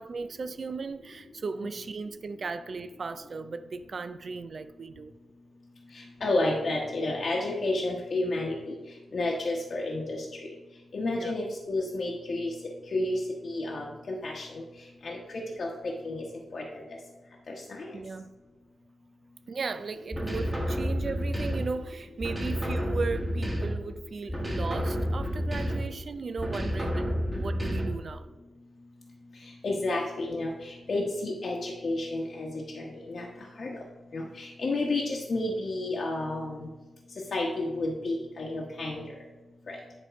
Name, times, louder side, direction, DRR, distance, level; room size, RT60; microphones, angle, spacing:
voice 1, 0.0-5.1 11.1-11.4 17.9-18.4 19.5-28.3, right 4 dB, 45° right, 0.4 m, -36 dB
voice 2, 5.9-8.8 9.1-10.3 10.9-12.5 12.9-14.6 15.0-16.2 16.5-16.6 17.5-17.9 29.6-33.3 33.6-33.8 34.1-36.7 37.3-39.0 39.7-39.8, left 2 dB, 50° left, 1.0 m, -31 dB
sound 1, 20.1-21.8 22.2-23.9 24.3-26.0 26.4-28.1, equal, 10° right, 1.4 m, -30 dB
10.0 x 3.6 x 5.1 m
wide cardioid pair, 165°, 0 cm